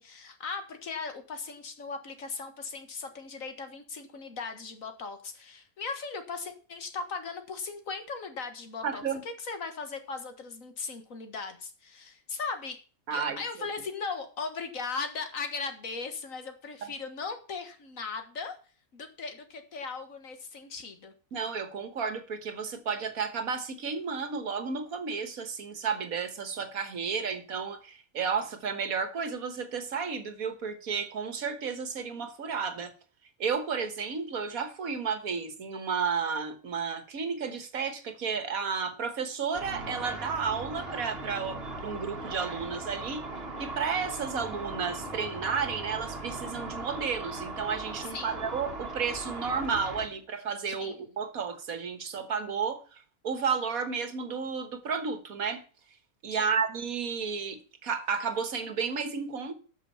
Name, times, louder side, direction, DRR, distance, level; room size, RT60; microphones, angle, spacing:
voice 1, 0.0-12.8 13.1-18.6 18.9-21.1 48.1-48.4 50.7-51.0 56.3-56.5, left 4 dB, 70° left, 7 dB, 1.9 m, -38 dB
voice 2, 8.8-9.2 13.1-13.4 16.8-16.9 21.3-32.9 33.4-43.2 43.6-55.6 56.2-59.5, right 6 dB, 75° right, 9 dB, 1.8 m, -32 dB
Car / Traffic noise roadway noise / Engine, 39.5-50.1, right 2 dB, 45° right, 2.0 m, -39 dB
12.5 x 6.2 x 5.6 m, 0.39 s
omnidirectional pair, 1.5 m